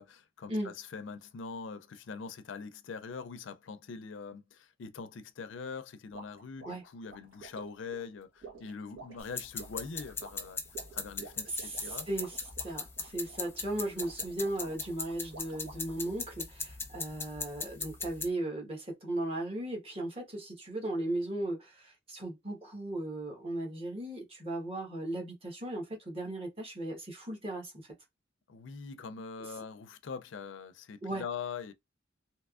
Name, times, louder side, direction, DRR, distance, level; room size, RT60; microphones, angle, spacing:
voice 1, 0.0-10.6 10.9-12.1 28.5-31.7, left 5 dB, 65° left, 0.4 m, -43 dB
sound 1, 6.1-16.0, right 3 dB, 85° right, 1.4 m, -52 dB
sound 2, 9.2-18.3, left 4 dB, 10° left, 0.6 m, -39 dB
voice 2, 11.5-27.9 31.0-31.2, right 1 dB, 30° right, 1.2 m, -37 dB
3.3 x 2.8 x 2.4 m
head